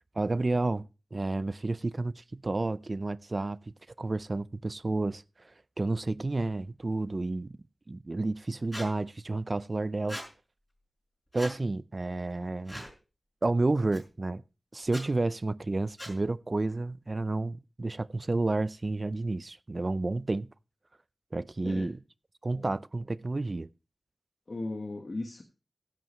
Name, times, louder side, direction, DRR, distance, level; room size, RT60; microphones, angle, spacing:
voice 1, 0.2-3.6 4.0-5.2 5.8-7.6 7.9-10.2 11.3-12.9 13.4-14.4 14.7-20.5 21.3-22.0 22.4-23.7, right 2 dB, 45° right, 0.5 m, -30 dB
Squeak, 8.7-8.9 10.1-10.3 11.3-11.6 12.7-12.9 13.9-14.0 14.8-15.0 16.0-16.2, equal, 10° left, 5.4 m, -40 dB
voice 2, 24.5-25.4, left 2 dB, 60° left, 1.3 m, -36 dB
15.0 x 10.5 x 3.1 m
wide cardioid pair, 60°, 0 cm